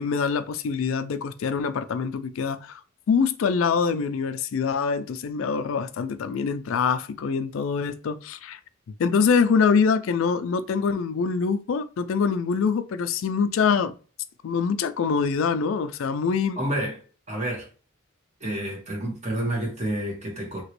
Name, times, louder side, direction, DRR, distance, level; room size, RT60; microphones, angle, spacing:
voice 1, 0.0-2.8 3.1-8.6 9.0-13.9 14.4-16.6, left 5 dB, 70° left, 0.4 m, -24 dB
voice 2, 16.5-17.0 17.3-17.7 18.4-20.6, right 1 dB, 35° right, 1.2 m, -29 dB
3.0 x 2.9 x 3.0 m
head